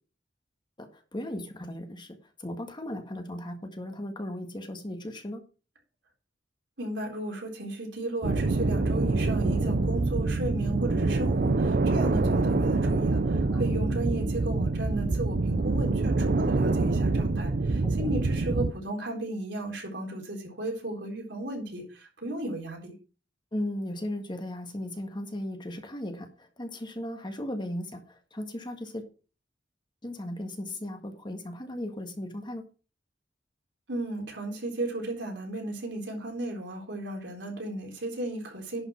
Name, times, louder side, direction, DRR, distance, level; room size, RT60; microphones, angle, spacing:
voice 1, 0.8-5.4 9.6-9.7 13.5-13.8 17.8-18.1 23.5-29.0 30.0-32.6, left 1 dB, 25° left, 5 dB, 1.7 m, -37 dB
voice 2, 6.8-22.9 33.9-38.9, right 1 dB, 80° right, 0 dB, 3.9 m, -35 dB
sound 1, 8.2-18.7, right 3 dB, 55° right, 0.6 m, -26 dB
11.0 x 5.4 x 5.7 m, 0.35 s
head